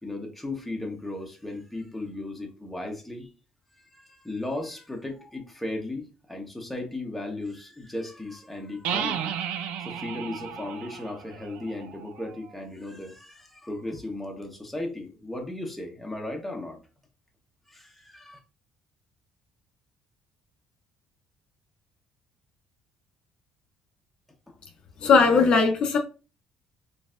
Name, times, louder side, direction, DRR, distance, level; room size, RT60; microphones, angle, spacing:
voice 1, 0.0-3.3 3.9-9.4 9.8-16.8 17.7-18.4 24.5-24.6, left 2 dB, 5° left, 1.0 m, -36 dB
sound 1, 8.8-12.5, right 8 dB, 85° right, 0.5 m, -34 dB
voice 2, 25.0-26.0, left 4 dB, 50° left, 0.6 m, -19 dB
4.0 x 3.3 x 2.5 m
cardioid pair, 130°, 2 cm